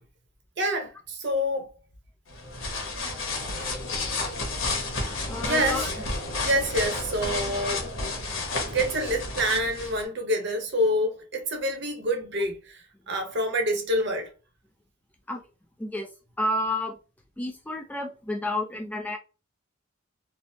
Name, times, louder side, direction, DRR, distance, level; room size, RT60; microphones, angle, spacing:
voice 1, 0.6-1.7 5.4-5.9 6.4-7.9 8.7-14.3, equal, 60° right, 0.8 m, -27 dB
sound 1, 2.3-10.0, left 3 dB, 80° left, 1.0 m, -31 dB
voice 2, 5.3-5.9 15.3-15.4 15.8-16.1 16.4-17.0 17.4-19.2, left 1 dB, 10° left, 0.3 m, -30 dB
3.3 x 2.0 x 2.7 m
head